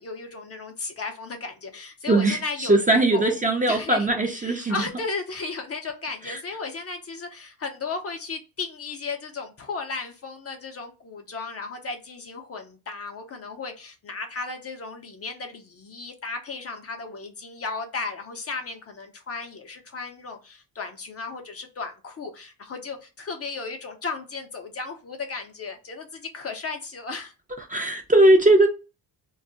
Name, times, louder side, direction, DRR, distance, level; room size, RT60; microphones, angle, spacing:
voice 1, 0.0-2.8 3.1-3.3 3.7-4.1 4.4-27.3, left 4 dB, 35° left, 0.6 m, -35 dB
voice 2, 2.1-4.8 6.3-6.4 27.7-28.7, right 2 dB, 20° right, 0.6 m, -19 dB
2.3 x 2.0 x 3.8 m
cardioid pair, 115°, 43 cm